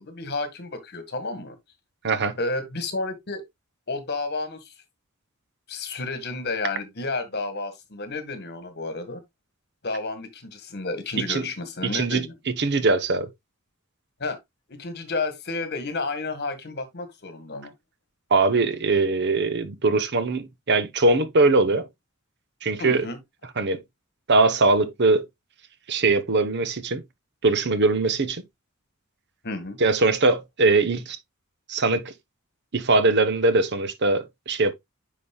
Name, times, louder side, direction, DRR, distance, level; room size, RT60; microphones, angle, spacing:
voice 1, 0.0-1.6 2.4-3.4 3.9-4.7 5.7-9.2 9.8-12.4 14.2-14.4 14.7-17.7 22.8-23.2 29.4-29.8, left 3 dB, 50° left, 1.7 m, -31 dB
voice 2, 11.9-12.3 12.6-13.3 18.3-21.9 22.6-23.0 23.6-23.8 24.3-25.2 25.9-27.0 27.4-28.4 29.8-31.2 31.7-32.1 32.7-34.7, right 3 dB, 55° right, 0.9 m, -21 dB
9.7 x 5.3 x 2.3 m
head